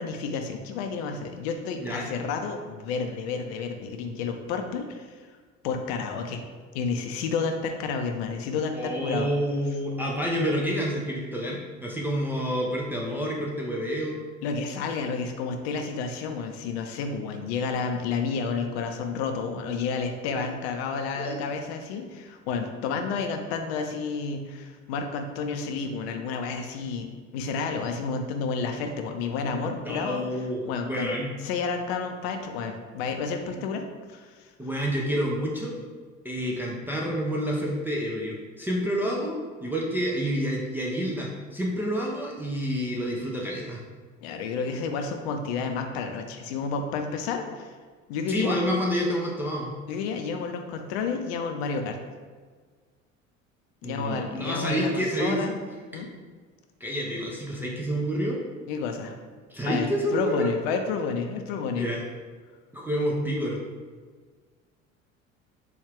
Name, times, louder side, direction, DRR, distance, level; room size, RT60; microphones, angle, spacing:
voice 1, 0.0-5.2 5.6-6.4 6.7-9.3 14.4-27.1 27.3-31.2 31.4-33.8 34.1-34.5 44.2-47.7 48.1-48.6 49.9-52.0 53.8-55.6 55.9-56.1 58.7-59.1 59.6-61.9, left 5 dB, 55° left, 5 dB, 0.5 m, -30 dB
voice 2, 8.7-14.2 20.4-20.5 21.2-21.5 29.8-31.3 34.6-35.8 36.2-43.8 48.3-49.7 53.8-55.5 55.9-56.0 56.8-58.4 59.5-60.5 61.8-62.0 62.7-63.6, equal, 5° right, -3 dB, 0.4 m, -28 dB
4.4 x 2.3 x 3.4 m, 1.5 s
figure-of-eight pair, 65°, 39 cm